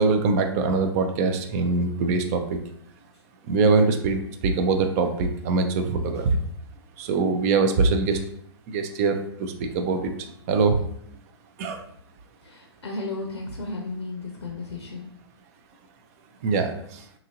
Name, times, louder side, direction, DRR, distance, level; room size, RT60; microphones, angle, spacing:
voice 1, 0.0-2.6 3.4-6.4 7.0-8.2 8.7-10.1 10.5-10.8 11.6-11.8 16.4-17.0, right 4 dB, 35° right, 6 dB, 0.3 m, -23 dB
voice 2, 12.4-15.1, left 3 dB, 70° left, 1 dB, 0.5 m, -34 dB
2.9 x 2.5 x 2.5 m, 0.69 s
figure-of-eight pair, 115°, 14 cm